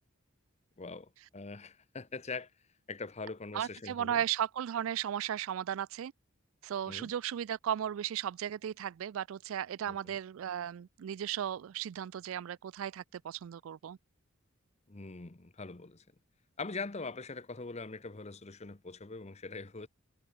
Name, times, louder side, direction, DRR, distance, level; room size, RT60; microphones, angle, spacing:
voice 1, 0.8-2.5 2.9-4.2 6.9-7.1 9.9-10.2 14.9-16.0 16.6-19.9, left 3 dB, 30° left, 0.9 m, -42 dB
voice 2, 3.5-6.1 6.6-14.0, right 10 dB, 70° right, 0.3 m, -35 dB
head